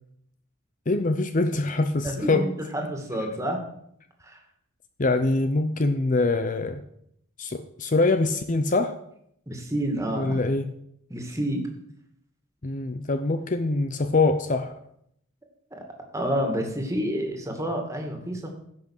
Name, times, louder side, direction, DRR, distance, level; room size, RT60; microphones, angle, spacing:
voice 1, 0.9-2.5 5.0-6.8 7.4-9.0 10.1-10.7 12.6-14.7, left 2 dB, 35° left, 9 dB, 0.6 m, -24 dB
voice 2, 2.0-3.6 4.2-4.4 9.5-10.4 11.1-11.7 16.1-18.5, equal, 15° right, 2 dB, 2.2 m, -29 dB
16.0 x 6.1 x 6.6 m, 0.73 s
head